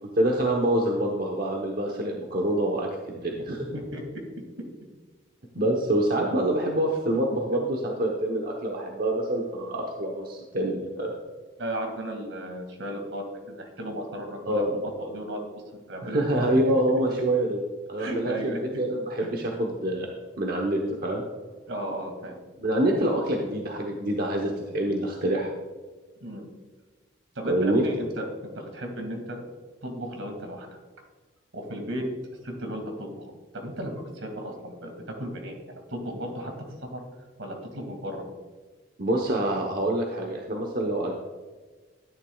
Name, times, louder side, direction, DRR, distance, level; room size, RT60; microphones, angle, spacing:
voice 1, 0.0-2.9 3.2-3.8 5.5-11.2 14.5-14.8 16.0-17.6 17.9-20.1 20.4-21.2 22.6-25.5 27.5-27.8 39.0-41.1, right 1 dB, 50° right, 1 dB, 0.9 m, -26 dB
voice 2, 11.6-16.3 16.5-16.6 18.0-18.8 19.2-19.3 21.7-22.4 26.2-26.5 27.4-29.4 29.8-30.7 31.5-32.1 32.4-36.5 36.9-37.0 37.4-38.2, equal, 80° right, 3 dB, 2.1 m, -35 dB
12.0 x 10.0 x 2.3 m, 1.3 s
head